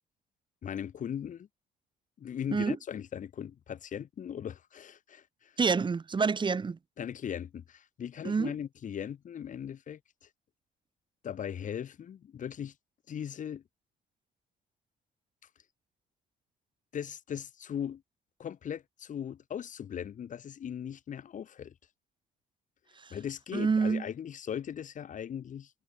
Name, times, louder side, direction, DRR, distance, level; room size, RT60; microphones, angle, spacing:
voice 1, 0.6-1.5 2.2-5.6 7.0-10.3 11.2-12.7 13.1-13.6 16.9-18.0 18.4-21.7 23.1-25.7, left 9 dB, 50° left, 5.8 m, -39 dB
voice 2, 5.6-6.8 8.2-8.5 22.9-23.2 23.5-24.1, right 5 dB, 30° right, 4.3 m, -28 dB
cardioid pair, 110°, 17 cm